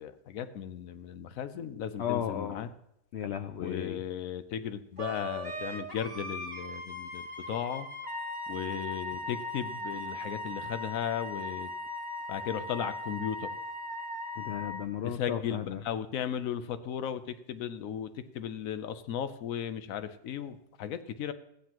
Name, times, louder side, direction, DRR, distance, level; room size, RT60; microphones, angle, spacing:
voice 1, 0.0-2.7 3.6-7.9 8.5-11.7 12.3-13.5 15.0-17.2 17.5-21.3, left 9 dB, 65° left, 12 dB, 1.0 m, -36 dB
voice 2, 2.0-2.6 3.1-4.0 14.4-15.8, left 9 dB, 85° left, 8 dB, 0.5 m, -34 dB
Wind instrument woodwind instrument, 5.0-14.8, left 1 dB, 20° right, 1.8 m, -38 dB
14.5 x 9.4 x 3.0 m, 0.78 s
omnidirectional pair, 1.7 m